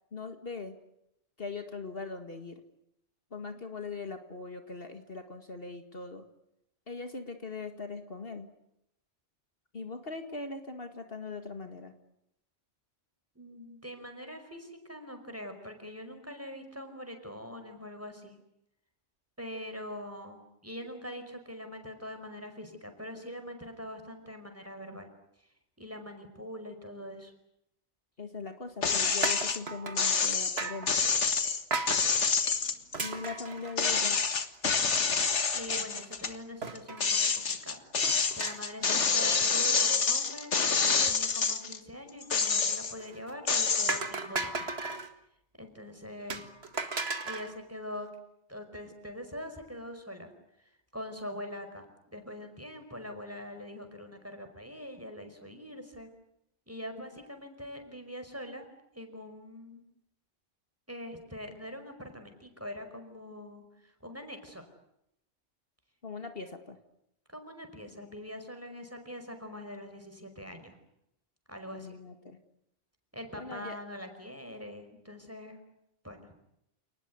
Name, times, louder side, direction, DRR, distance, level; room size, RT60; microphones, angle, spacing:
voice 1, 0.1-0.7 1.4-2.6 3.3-6.2 6.9-8.5 9.7-11.9 28.2-30.9 33.0-34.2 38.8-39.4 66.0-66.8 71.7-72.4 73.4-73.8, left 4 dB, 55° left, 7 dB, 2.2 m, -40 dB
voice 2, 13.4-18.4 19.4-25.1 25.8-27.3 35.5-37.8 38.3-44.6 45.6-46.4 47.2-48.1 48.5-50.3 50.9-51.9 52.1-56.1 56.7-58.6 59.0-59.8 60.9-64.6 67.3-70.8 71.5-72.0 73.1-75.6 76.0-76.3, left 1 dB, 10° right, 6 dB, 5.2 m, -43 dB
sound 1, 28.8-29.6 30.0-33.4 33.8-36.4 36.8-41.8 42.2-43.0 43.5-44.0, left 5 dB, 80° left, 2.0 m, -27 dB
sound 2, 29.2-30.2 30.6-30.9 31.7-32.0 32.9-34.3 34.7-34.8 35.0-35.1 36.6-37.1 38.0-38.8 39.1-39.4 43.0-43.3 43.9-45.1 46.3-47.6, right 3 dB, 65° right, 2.1 m, -35 dB
29.0 x 20.0 x 9.5 m, 0.81 s
omnidirectional pair, 1.2 m